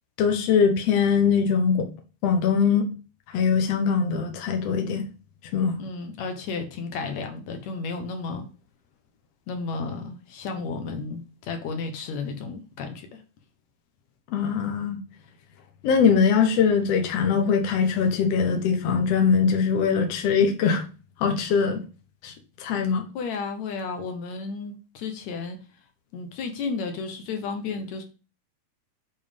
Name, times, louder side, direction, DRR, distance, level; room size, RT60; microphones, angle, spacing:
voice 1, 0.2-1.9 2.2-2.9 3.3-5.0 5.5-5.8 14.3-15.0 15.8-20.8 21.2-21.8 22.2-22.3 22.6-23.0, left 6 dB, 90° left, 1.4 m, -22 dB
voice 2, 5.8-8.5 9.5-13.2 23.1-25.6 26.1-28.0, left 4 dB, 65° left, 1.8 m, -33 dB
7.3 x 4.7 x 5.2 m
omnidirectional pair, 4.8 m